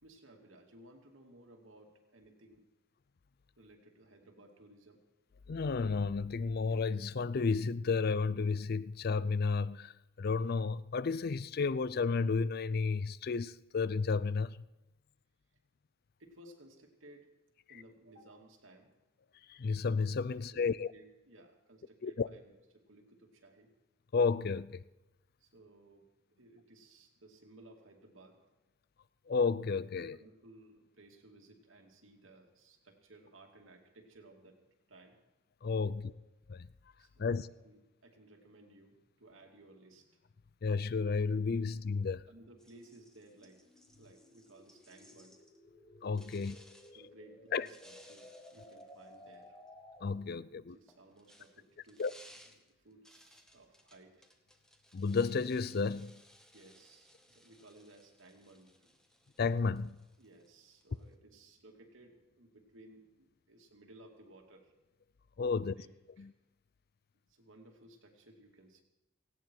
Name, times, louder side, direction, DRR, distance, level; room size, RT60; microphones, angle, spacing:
voice 1, 0.0-2.6 3.6-5.0 16.2-17.3 17.7-18.9 20.5-23.7 25.4-28.4 30.0-34.6 34.9-35.2 35.8-36.1 37.0-40.1 41.6-41.7 42.3-43.6 44.0-45.4 46.3-46.6 46.9-49.6 50.5-52.0 52.6-54.1 56.5-59.0 59.3-59.4 60.2-64.7 65.5-65.9 66.2-66.3 67.3-68.8, right 2 dB, 80° right, 2.5 m, -59 dB
voice 2, 5.5-9.9 10.2-14.6 19.5-20.9 22.0-22.3 24.1-24.8 29.3-30.2 35.6-36.1 36.5-36.7 37.2-37.5 40.6-42.2 46.0-46.6 47.5-47.7 50.0-50.8 52.0-52.1 54.9-56.2 59.4-59.9 65.4-65.8 66.2-66.3, left 4 dB, 50° left, 0.4 m, -32 dB
sound 1, 39.1-50.4, left 1 dB, 25° left, 3.5 m, -58 dB
sound 2, 42.6-45.6 46.1-47.0 47.6-49.7 50.7-61.1, equal, 5° left, 1.2 m, -62 dB
17.5 x 16.5 x 4.6 m
head